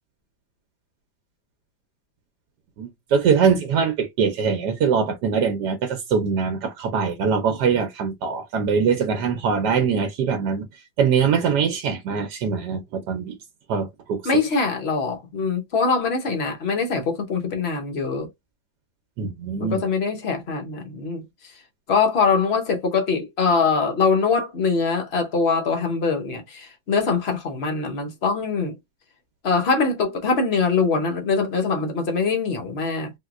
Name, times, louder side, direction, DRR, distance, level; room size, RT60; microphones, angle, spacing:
voice 1, 2.8-10.7 11.0-13.4 13.7-14.2 19.2-19.8, right 6 dB, 70° right, 1.1 m, -22 dB
voice 2, 14.2-18.3 19.6-21.2 21.9-28.8 29.4-33.1, left 4 dB, 55° left, 0.7 m, -23 dB
3.5 x 2.8 x 2.4 m
omnidirectional pair, 2.2 m